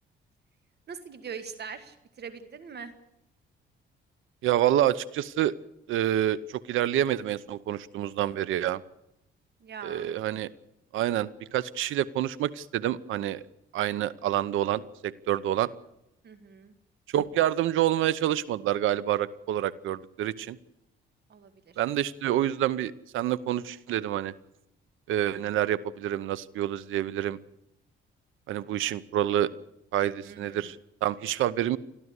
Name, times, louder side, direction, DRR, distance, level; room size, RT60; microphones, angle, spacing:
voice 1, 0.9-2.9 9.6-10.1 16.2-16.7 21.3-21.8 30.2-30.8, right 6 dB, 55° right, 11 dB, 2.1 m, -42 dB
voice 2, 4.4-5.5 5.9-8.8 9.8-10.5 10.9-13.4 13.7-15.7 17.1-20.6 21.8-24.3 25.1-27.4 28.5-29.5 29.9-30.8 31.0-31.8, right 12 dB, 85° right, 19 dB, 0.9 m, -27 dB
30.0 x 12.5 x 8.3 m, 0.84 s
cardioid pair, 90°, 20 cm